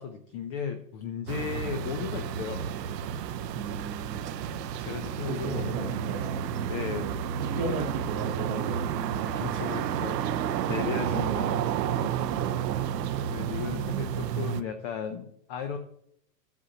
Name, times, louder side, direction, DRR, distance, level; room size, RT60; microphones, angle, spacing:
voice 1, 0.0-2.6 4.8-6.0 6.7-7.1 7.5-7.9 9.3-10.2 10.7-11.7 13.0-15.8, left 7 dB, 25° left, 6 dB, 0.5 m, -35 dB
sound 1, 1.3-14.6, right 9 dB, 75° right, 0.9 m, -31 dB
voice 2, 3.5-4.3 5.3-6.4 7.0-9.2 10.5-11.2 12.2-12.9 13.7-14.3, right 5 dB, 40° right, -1 dB, 1.1 m, -37 dB
13.5 x 8.3 x 2.8 m, 0.71 s
supercardioid pair, 155°, 49 cm